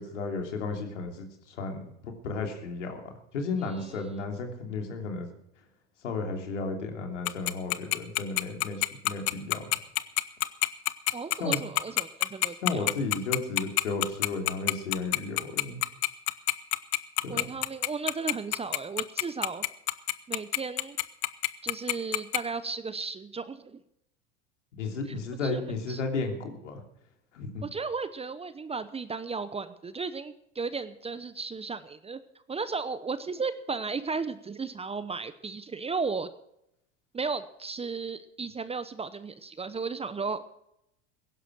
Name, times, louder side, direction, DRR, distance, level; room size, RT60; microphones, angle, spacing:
voice 1, 0.0-5.3 6.0-9.8 11.4-11.6 12.6-15.8 17.2-17.5 24.8-26.8 27.3-27.6, left 3 dB, 85° left, 3 dB, 3.1 m, -34 dB
voice 2, 3.6-4.2 11.1-12.9 17.3-19.6 20.3-21.0 21.6-23.8 25.4-25.6 25.9-26.0 27.6-32.2 32.5-36.3 37.1-40.6, right 4 dB, 15° right, 13 dB, 0.8 m, -35 dB
Tick-tock, 7.3-22.4, left 24 dB, 65° left, 0.9 m, -25 dB
16.0 x 11.5 x 6.2 m, 0.81 s
hypercardioid pair, 90°, 36 cm